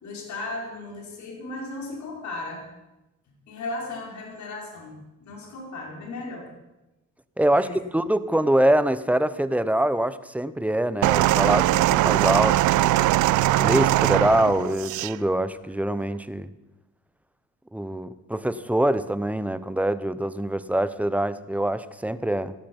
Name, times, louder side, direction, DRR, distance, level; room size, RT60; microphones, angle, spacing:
voice 1, 0.0-2.6 3.5-6.5 7.5-7.8, left 2 dB, 70° left, 0 dB, 4.8 m, -36 dB
voice 2, 7.4-12.6 12.8-13.0 13.6-16.5 17.7-22.5, right 1 dB, 5° right, 14 dB, 0.8 m, -24 dB
sound 1, 11.0-15.2 16.0-16.2, right 16 dB, 80° right, 0.5 m, -21 dB
16.5 x 13.0 x 5.4 m, 0.98 s
cardioid pair, 90°, 30 cm